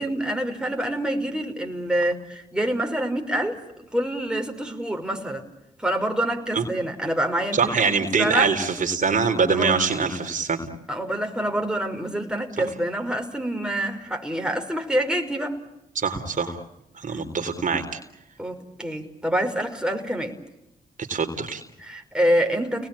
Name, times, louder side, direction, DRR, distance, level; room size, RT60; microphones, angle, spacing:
voice 1, 0.0-3.6 3.9-5.4 5.8-7.8 8.2-8.5 9.5-9.8 10.9-15.6 18.4-20.3 21.8-22.9, right 1 dB, 5° right, 3 dB, 5.6 m, -26 dB
voice 2, 7.5-10.6 16.0-16.6 17.0-17.8 21.1-21.6, right 5 dB, 55° right, 5 dB, 4.0 m, -23 dB
30.0 x 20.0 x 8.8 m, 0.86 s
supercardioid pair, 50°, 16 cm